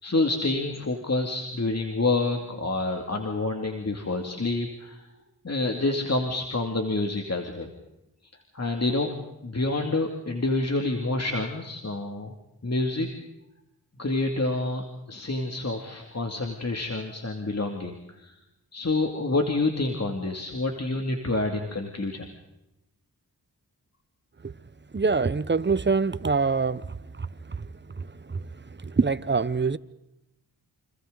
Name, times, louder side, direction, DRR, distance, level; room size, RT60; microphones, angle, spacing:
voice 1, 0.0-5.0 5.4-7.7 8.5-9.1 9.4-12.3 12.6-13.1 14.0-18.3 18.7-22.3, left 2 dB, 40° left, 2.5 m, -28 dB
voice 2, 24.9-26.8 29.0-29.8, right 4 dB, 30° right, 0.9 m, -23 dB
29.5 x 26.0 x 4.0 m
cardioid pair, 40°, 39 cm